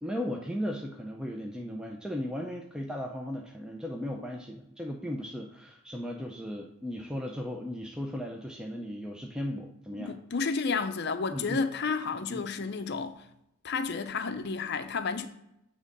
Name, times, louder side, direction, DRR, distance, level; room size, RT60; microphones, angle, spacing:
voice 1, 0.0-10.1 11.3-11.6 12.3-12.5, equal, 5° right, 0.4 m, -36 dB
voice 2, 10.0-13.2 13.6-15.3, left 4 dB, 50° left, 0.5 m, -31 dB
8.6 x 3.6 x 5.3 m
head